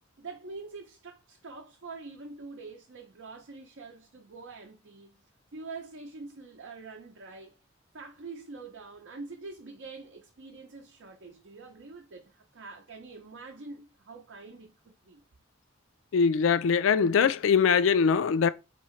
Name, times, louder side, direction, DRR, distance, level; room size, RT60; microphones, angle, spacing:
voice 1, 0.2-5.2 5.5-7.6 7.9-15.2, right 3 dB, 75° right, 0.6 m, -45 dB
voice 2, 16.1-18.5, left 6 dB, 85° left, 0.3 m, -22 dB
2.9 x 2.7 x 4.3 m
head